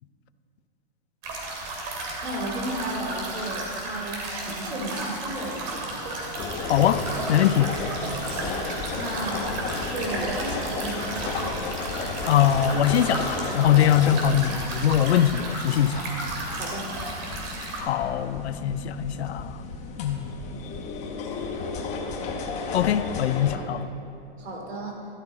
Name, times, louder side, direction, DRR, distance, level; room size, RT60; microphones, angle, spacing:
sound 1, 1.2-17.8, right 2 dB, 40° right, 2.7 m, -34 dB
voice 1, 2.2-6.2 8.3-11.3 14.0-14.1 16.5-16.9 24.4-25.0, right 1 dB, 80° right, 2.8 m, -34 dB
sound 2, 6.4-23.6, left 4 dB, 20° left, 1.0 m, -34 dB
voice 2, 6.7-7.0 7.3-7.8 12.3-16.1 17.8-19.6 20.0-20.3 22.7-23.9, left 10 dB, 85° left, 0.6 m, -22 dB
12.5 x 12.0 x 4.1 m
hypercardioid pair, 150°, 32 cm